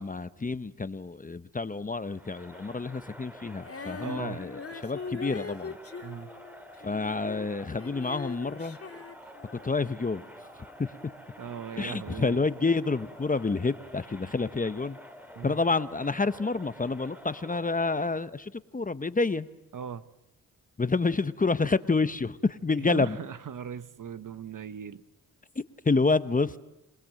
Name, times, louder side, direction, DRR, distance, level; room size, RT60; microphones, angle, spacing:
voice 1, 0.0-5.8 6.8-8.8 9.6-10.2 10.8-10.9 11.8-15.0 15.4-19.5 20.8-23.2 25.8-26.6, left 3 dB, 25° left, 0.8 m, -28 dB
Crowd, 2.1-18.3, equal, 5° right, 2.2 m, -49 dB
Female singing, 3.6-9.8, left 5 dB, 40° left, 2.7 m, -41 dB
voice 2, 4.0-4.4 6.0-6.3 11.4-12.4 15.4-15.6 19.7-20.0 22.9-25.0, right 7 dB, 60° right, 1.2 m, -38 dB
27.0 x 20.0 x 7.6 m
cardioid pair, 80°, 36 cm